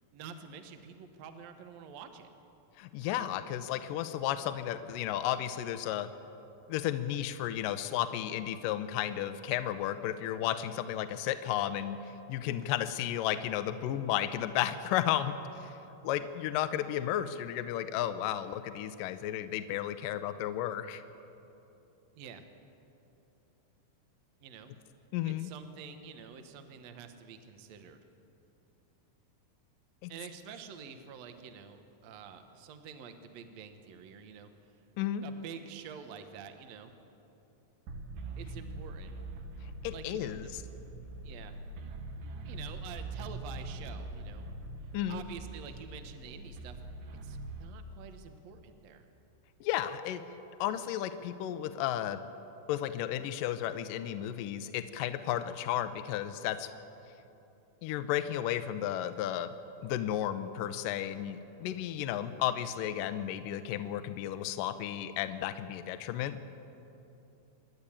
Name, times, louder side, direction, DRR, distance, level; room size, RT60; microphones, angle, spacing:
voice 1, 0.1-2.3 22.2-22.4 24.4-24.7 25.2-28.0 30.1-34.5 35.2-36.9 38.4-39.1 39.9-40.5 41.2-41.6 42.4-44.5 45.1-46.8 47.2-49.1, right 7 dB, 65° right, 7 dB, 1.9 m, -48 dB
voice 2, 2.8-6.1 6.7-12.0 12.3-15.3 15.6-15.7 16.0-21.0 25.1-25.5 30.0-30.1 35.0-35.2 39.8-40.6 44.9-45.2 49.6-50.2 50.6-52.2 52.7-56.7 57.8-59.5 59.8-66.5, left 11 dB, 80° left, 10 dB, 2.2 m, -33 dB
sound 1, 37.9-47.7, right 2 dB, 80° right, 3.1 m, -43 dB
27.5 x 11.0 x 8.7 m, 2.9 s
omnidirectional pair, 4.3 m